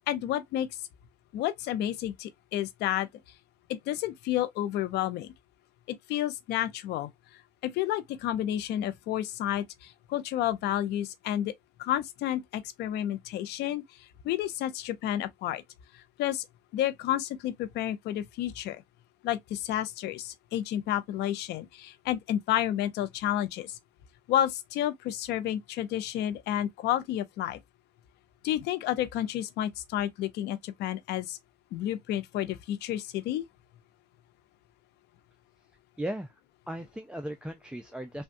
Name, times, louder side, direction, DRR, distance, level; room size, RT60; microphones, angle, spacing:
voice 1, 0.1-0.7 1.3-3.1 3.7-5.3 5.9-7.1 7.6-11.5 11.8-15.6 15.9-16.5 16.7-18.8 19.2-23.8 24.3-27.6 28.4-31.4 31.7-33.4, left 12 dB, 80° left, 0.5 m, -31 dB
voice 2, 36.0-36.4 36.7-38.2, right 1 dB, 5° right, 0.4 m, -37 dB
3.4 x 2.2 x 2.5 m
cardioid pair, 110°, 17 cm